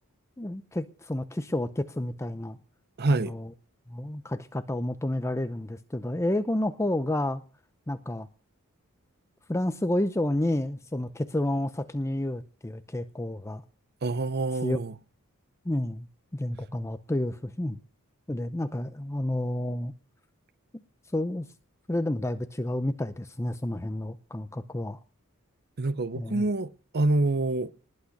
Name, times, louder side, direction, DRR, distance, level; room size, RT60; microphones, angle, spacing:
voice 1, 0.4-2.6 3.1-3.5 3.9-7.4 7.9-8.3 9.5-13.6 14.6-14.8 15.6-16.1 16.3-17.8 18.3-19.9 21.1-21.5 21.9-25.0 26.1-26.4, left 1 dB, 15° left, 0.6 m, -30 dB
voice 2, 3.0-3.3 14.0-14.9 25.8-27.7, right 2 dB, 45° right, 0.7 m, -26 dB
20.0 x 8.7 x 6.5 m
head